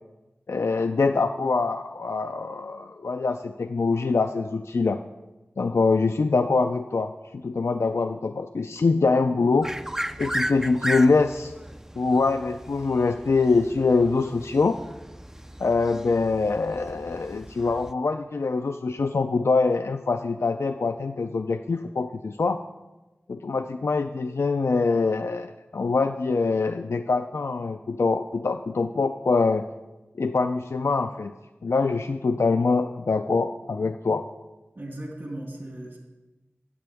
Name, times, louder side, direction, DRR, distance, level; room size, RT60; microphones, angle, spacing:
voice 1, 0.5-5.0 5.6-7.1 7.4-9.7 10.2-11.5 12.0-14.8 15.6-22.6 23.3-29.6 30.2-31.3 31.6-34.3, left 4 dB, 85° left, 6 dB, 0.4 m, -24 dB
sound 1, 9.6-17.9, right 1 dB, 10° right, 0.4 m, -36 dB
voice 2, 34.7-36.0, right 1 dB, 65° right, -2 dB, 3.4 m, -37 dB
20.5 x 7.6 x 3.5 m, 1.1 s
wide cardioid pair, 65°, 4 cm